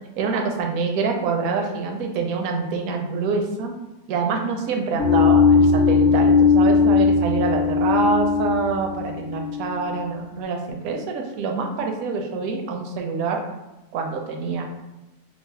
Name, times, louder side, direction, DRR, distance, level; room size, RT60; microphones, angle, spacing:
voice 1, 0.1-3.7 4.1-13.4 13.9-14.6, right 4 dB, 70° right, 3 dB, 0.9 m, -26 dB
sound 1, 5.0-10.0, left 5 dB, 55° left, 0.9 m, -18 dB
3.1 x 2.0 x 3.9 m, 1.0 s
omnidirectional pair, 1.7 m